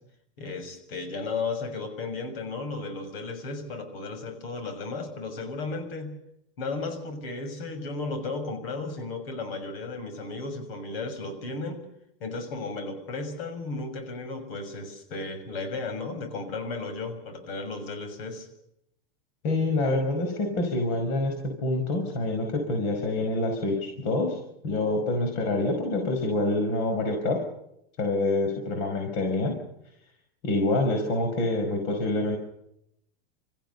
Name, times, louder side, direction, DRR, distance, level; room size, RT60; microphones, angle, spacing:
voice 1, 0.4-6.1 6.6-11.8 12.2-18.5, left 3 dB, 75° left, 8 dB, 6.7 m, -34 dB
voice 2, 19.4-21.3 21.6-24.4 24.6-27.4 28.0-29.6 30.4-32.4, left 2 dB, 50° left, 3 dB, 5.4 m, -26 dB
28.0 x 15.0 x 7.0 m, 0.78 s
supercardioid pair, 150°, 30 cm